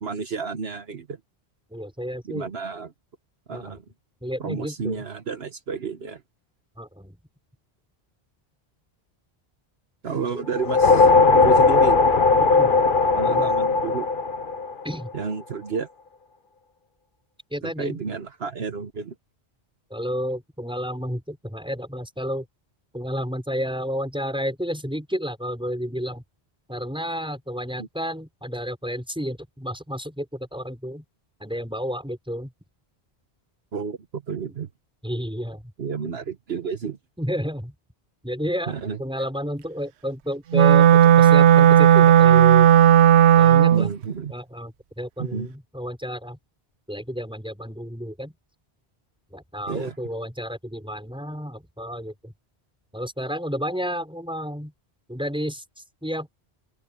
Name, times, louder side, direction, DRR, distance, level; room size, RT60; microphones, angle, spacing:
voice 1, 0.0-1.2 2.2-2.9 3.5-3.8 4.4-6.2 10.0-12.0 13.1-14.1 15.1-15.9 17.6-19.1 27.8-27.9 33.7-34.7 35.8-37.0 38.7-39.0 43.7-44.3 45.2-45.5 49.7-50.0, right 5 dB, 70° right, 1.4 m, -31 dB
voice 2, 1.7-2.5 3.5-3.7 4.2-5.0 6.8-7.2 10.3-10.4 12.4-12.8 13.3-13.6 14.8-15.1 17.5-18.0 19.9-22.4 22.9-26.2 26.7-31.0 31.4-32.5 35.0-35.6 37.2-37.7 38.2-38.7 39.0-42.9 43.4-43.9 44.3-46.4 46.9-48.3 49.3-52.3 52.9-54.7 55.1-55.6 56.0-56.3, equal, 5° right, 6.2 m, -31 dB
sound 1, 10.5-15.1, left 4 dB, 55° left, 1.2 m, -18 dB
Wind instrument woodwind instrument, 40.5-43.9, right 11 dB, 90° right, 0.9 m, -13 dB
open air
omnidirectional pair, 1.1 m